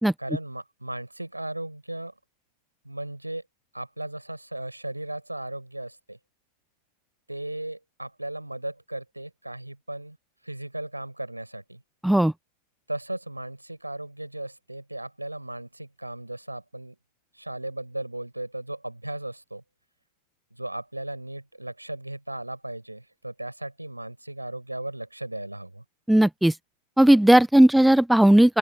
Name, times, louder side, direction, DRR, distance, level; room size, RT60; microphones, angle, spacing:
voice 1, 0.2-2.1 2.8-3.4 3.7-6.2 7.3-10.2 10.4-11.8 12.9-17.0 17.3-19.6 20.5-25.8, right 1 dB, 85° right, 6.2 m, -36 dB
voice 2, 26.1-26.5 27.0-28.6, right 1 dB, ahead, 1.0 m, -16 dB
open air
figure-of-eight pair, 90°, 0 cm